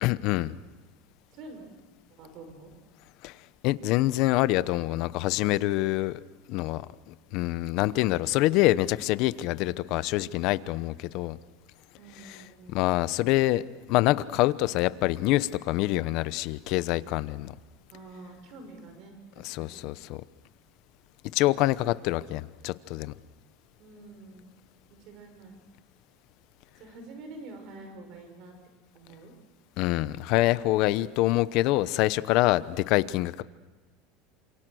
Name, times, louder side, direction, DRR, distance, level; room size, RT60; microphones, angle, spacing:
voice 1, 0.0-0.5 3.2-3.3 3.6-6.2 6.5-6.9 7.3-11.4 12.2-12.4 12.7-13.6 13.9-17.5 19.4-20.2 21.3-23.1 29.8-33.4, left 17 dB, 55° left, 15 dB, 0.9 m, -25 dB
voice 2, 1.3-1.7 2.2-2.7 9.6-10.0 11.9-12.8 17.9-19.9 23.8-24.5 24.9-25.6 26.8-28.5 28.9-29.3, right 2 dB, 50° right, 6 dB, 5.8 m, -47 dB
28.5 x 27.0 x 6.4 m, 1.3 s
supercardioid pair, 145°, 0 cm